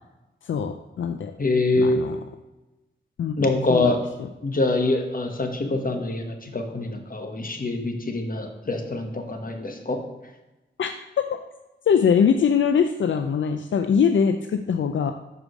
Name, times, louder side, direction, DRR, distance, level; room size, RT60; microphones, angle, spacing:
voice 1, 0.4-1.3 1.7-2.2 3.2-3.9 10.8-10.9 11.9-15.1, left 7 dB, 75° left, 6 dB, 0.4 m, -22 dB
voice 2, 1.4-2.0 3.4-4.0 4.4-10.0, left 2 dB, 45° left, 4 dB, 1.3 m, -25 dB
6.4 x 4.9 x 4.9 m, 1.0 s
cardioid pair, 50°, 20 cm